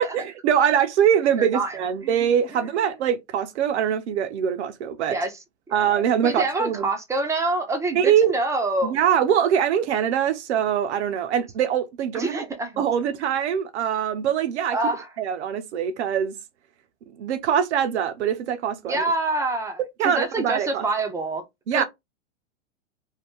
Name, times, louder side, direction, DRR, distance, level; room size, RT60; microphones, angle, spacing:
voice 1, 0.0-5.2 5.7-6.9 7.9-8.3 8.8-12.5 12.8-14.8 15.2-16.4 17.2-19.1 20.0-20.9 21.7-21.8, right 9 dB, 65° right, 0.8 m, -23 dB
voice 2, 1.4-2.2 2.5-2.6 5.1-5.4 5.7-5.9 6.2-8.9 12.1-12.9 14.7-15.1 18.8-21.4 21.7-21.8, right 2 dB, 10° right, 0.6 m, -26 dB
2.8 x 2.2 x 3.6 m
hypercardioid pair, 120°, 36 cm